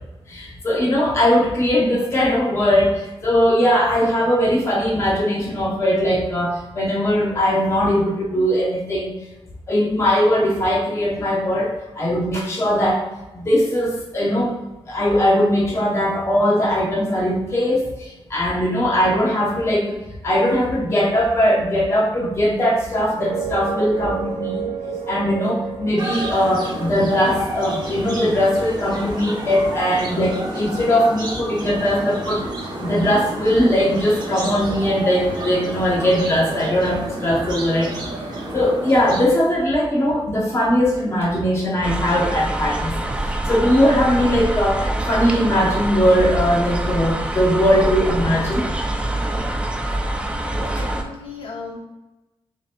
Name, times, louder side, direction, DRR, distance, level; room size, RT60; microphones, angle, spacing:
voice 1, 0.3-9.1 9.7-13.1 13.3-14.5 14.9-20.0 20.2-24.6 25.1-32.4 32.8-38.0 38.5-42.9 43.5-48.6, equal, 30° left, -3 dB, 0.7 m, -20 dB
sound 1, 23.2-28.0, right 6 dB, 85° right, 0.5 m, -31 dB
sound 2, 26.0-39.2, right 1 dB, 45° right, 0.9 m, -30 dB
sound 3, 41.8-51.0, right 1 dB, 10° right, 0.3 m, -25 dB
voice 2, 50.4-51.8, left 4 dB, 60° left, -1 dB, 0.9 m, -36 dB
6.8 x 2.8 x 2.4 m, 1.0 s
wide cardioid pair, 180°, 10 cm